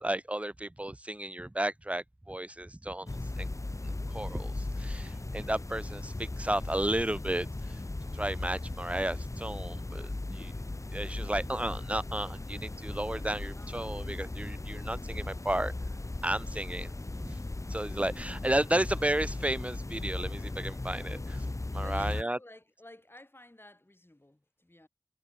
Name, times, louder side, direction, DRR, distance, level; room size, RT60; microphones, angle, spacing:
voice 1, 0.0-3.1 3.4-3.5 4.0-7.8 8.1-10.5 10.9-15.7 16.2-16.9 17.2-17.4 17.7-21.5 21.7-22.4, right 1 dB, 25° right, 0.6 m, -33 dB
sound 1, 3.1-22.2, left 2 dB, 65° left, 1.6 m, -37 dB
voice 2, 13.3-14.1 21.6-24.9, left 1 dB, 40° left, 6.9 m, -54 dB
wide cardioid pair, 40°, 6 cm